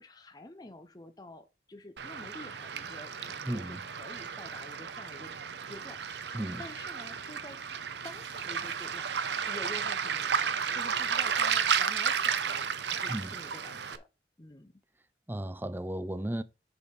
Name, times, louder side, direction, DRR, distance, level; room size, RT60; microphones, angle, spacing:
voice 1, 0.0-5.3 5.7-7.6 8.0-9.1 9.4-14.1 14.4-14.7, left 1 dB, 20° left, 0.7 m, -49 dB
Waves surf, 2.0-14.0, right 7 dB, 75° right, 0.7 m, -33 dB
voice 2, 3.4-3.8 6.3-6.6 13.1-13.4 15.3-16.4, right 1 dB, 10° right, 0.5 m, -34 dB
6.9 x 5.1 x 5.3 m
head